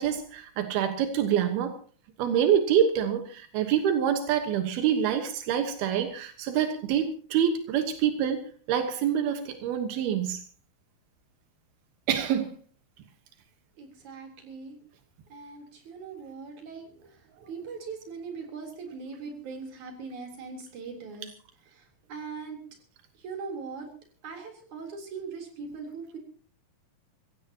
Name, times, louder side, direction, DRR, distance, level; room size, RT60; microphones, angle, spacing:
voice 1, 0.0-1.8 2.2-8.4 8.7-10.4 12.1-12.5, right 9 dB, 85° right, 6 dB, 3.3 m, -26 dB
voice 2, 13.8-14.8 15.3-21.3 21.7-22.6 23.1-23.9 24.2-26.2, right 5 dB, 55° right, 3 dB, 4.9 m, -40 dB
25.5 x 16.0 x 2.9 m, 0.40 s
omnidirectional pair, 4.3 m